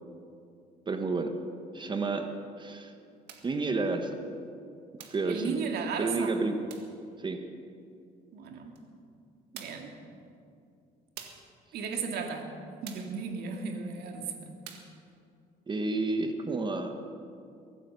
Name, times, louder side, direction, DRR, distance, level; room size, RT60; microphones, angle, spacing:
voice 1, 0.9-1.3 1.7-2.3 2.6-2.9 3.4-4.2 5.1-5.6 6.0-6.6 7.2-7.4 15.7-17.1, right 3 dB, 30° right, 6 dB, 1.3 m, -30 dB
sound 1, 3.3-3.6 5.0-5.3 6.7-7.0 8.7-8.8 9.5-9.9 11.2-11.5 12.8-13.2 14.6-15.0, right 9 dB, 90° right, 1.8 m, -47 dB
voice 2, 5.3-6.3 8.3-8.7 9.5-9.9 11.7-12.5 12.8-14.5, right 5 dB, 70° right, 3 dB, 2.5 m, -35 dB
22.5 x 9.2 x 6.9 m, 2.4 s
cardioid pair, 110°, 17 cm